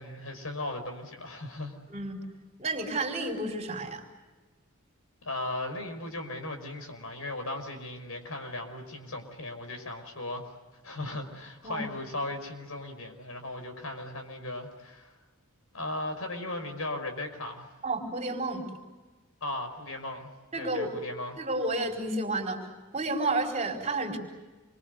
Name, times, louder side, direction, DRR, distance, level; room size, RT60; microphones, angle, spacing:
voice 1, 0.0-1.8 5.2-10.6 10.8-15.1 15.7-17.7 19.4-20.3 20.6-21.4, left 2 dB, 75° left, 6 dB, 5.3 m, -37 dB
voice 2, 1.9-2.2 2.6-4.0 11.6-11.9 17.8-18.6 20.5-21.0 21.4-22.7 22.9-24.2, right 2 dB, 30° right, 1 dB, 4.7 m, -31 dB
28.0 x 24.5 x 8.1 m, 1.2 s
head